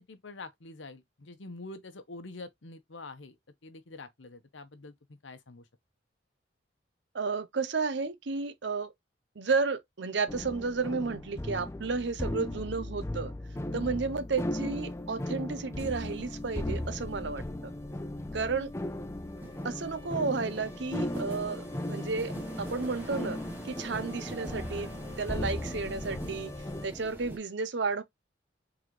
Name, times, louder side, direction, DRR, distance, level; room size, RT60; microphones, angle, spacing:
voice 1, 0.0-5.7, left 2 dB, 85° left, 0.9 m, -46 dB
voice 2, 7.1-8.9 9.4-13.3 13.7-17.7 18.3-18.7 19.6-23.4 23.6-24.9 25.2-26.5 26.8-28.0, right 4 dB, 70° right, 0.7 m, -32 dB
sound 1, 10.3-26.9, left 1 dB, 15° left, 0.4 m, -37 dB
sound 2, 13.4-13.9 14.3-27.4, right 1 dB, 10° right, 1.1 m, -46 dB
3.9 x 3.7 x 3.2 m
head